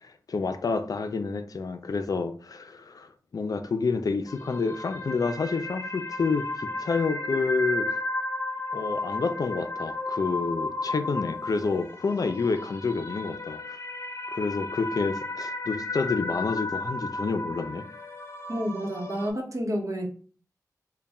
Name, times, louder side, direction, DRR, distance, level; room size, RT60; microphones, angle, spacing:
voice 1, 0.0-8.0 8.7-13.8 14.3-17.8, left 4 dB, 70° left, 0.4 m, -29 dB
sound 1, 4.3-19.3, left 2 dB, 40° left, 0.8 m, -34 dB
voice 2, 18.5-20.1, equal, 55° right, 0.9 m, -29 dB
3.4 x 2.2 x 4.1 m
wide cardioid pair, 65°, 6 cm